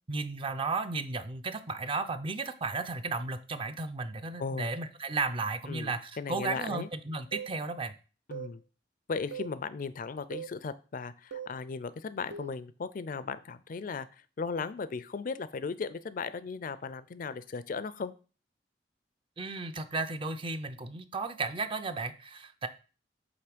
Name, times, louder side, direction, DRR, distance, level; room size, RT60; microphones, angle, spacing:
voice 1, 0.1-8.0 19.4-22.7, right 3 dB, 30° right, 9 dB, 0.5 m, -34 dB
voice 2, 4.4-4.7 5.7-6.9 8.3-8.6 9.1-14.1 14.4-18.1, left 4 dB, 50° left, 15 dB, 0.4 m, -36 dB
sound 1, 7.3-7.6 8.3-8.6 9.3-9.6 10.3-10.6 11.3-11.6 12.3-12.6, right 7 dB, 85° right, 0.8 m, -40 dB
7.9 x 3.1 x 5.1 m, 0.36 s
head